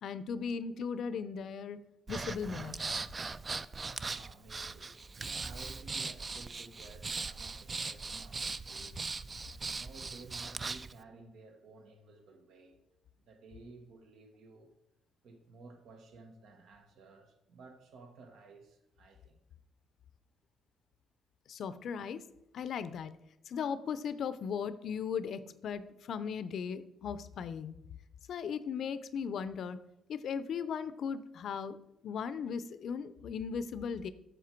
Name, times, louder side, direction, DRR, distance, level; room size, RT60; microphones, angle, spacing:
voice 1, 0.0-1.8 2.1-3.0 21.5-22.2 22.5-23.1 23.5-27.7 28.3-29.8 30.1-31.8 32.0-34.1, left 6 dB, 65° left, 0.5 m, -37 dB
Breathing, 2.1-10.9, right 4 dB, 30° right, 0.3 m, -39 dB
voice 2, 3.9-9.0 9.7-12.8 13.2-14.7 15.2-19.4, right 3 dB, 75° right, 1.1 m, -54 dB
7.5 x 6.5 x 4.5 m
cardioid pair, 90°, 0 cm